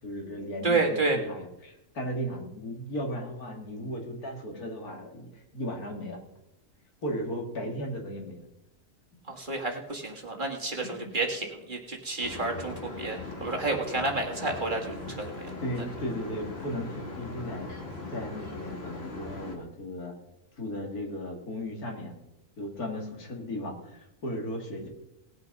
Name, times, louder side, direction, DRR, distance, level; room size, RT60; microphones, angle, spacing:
voice 1, 0.0-6.2 7.0-8.5 10.8-11.1 15.1-15.2 15.6-17.7 18.1-20.1 20.6-22.2 22.6-24.9, equal, 80° left, 2 dB, 2.8 m, -36 dB
voice 2, 0.6-1.2 9.3-15.5, right 3 dB, 35° right, 1 dB, 2.0 m, -30 dB
sound 1, 12.2-19.6, left 3 dB, 40° left, 2.4 m, -40 dB
18.5 x 8.1 x 5.4 m, 0.87 s
omnidirectional pair, 1.6 m